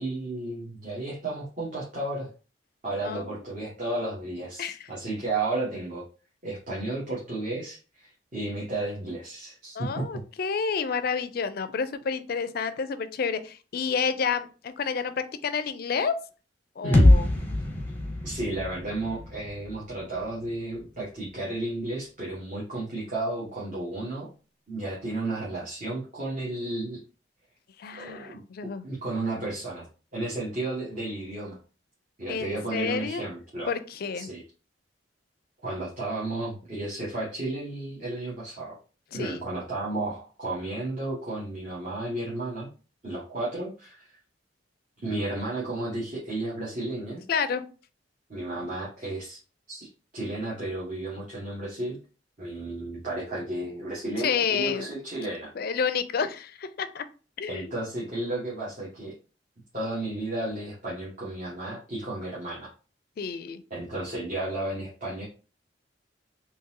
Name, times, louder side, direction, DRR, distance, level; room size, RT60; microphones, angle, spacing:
voice 1, 0.0-2.3 2.8-6.0 6.4-10.2 16.8-17.2 18.2-24.3 24.7-27.0 28.0-28.4 28.8-29.9 30.1-31.6 32.2-33.7 34.1-34.4 35.6-38.7 39.1-42.7 43.0-44.2 45.0-47.2 48.3-49.4 49.7-52.0 52.4-55.5 57.5-59.1 59.7-62.7 63.7-65.2, right 2 dB, 45° right, -7 dB, 1.2 m, -33 dB
voice 2, 3.0-3.4 4.6-4.9 9.7-16.2 16.8-17.3 27.8-28.9 32.3-33.2 33.7-34.3 39.2-39.4 47.3-47.6 48.5-48.7 54.2-54.9 55.6-57.0 57.4-57.8 63.2-63.6, left 6 dB, 55° left, 12 dB, 0.4 m, -30 dB
sound 1, 16.9-20.8, left 1 dB, 10° left, 0.7 m, -24 dB
3.8 x 2.8 x 2.7 m, 0.36 s
head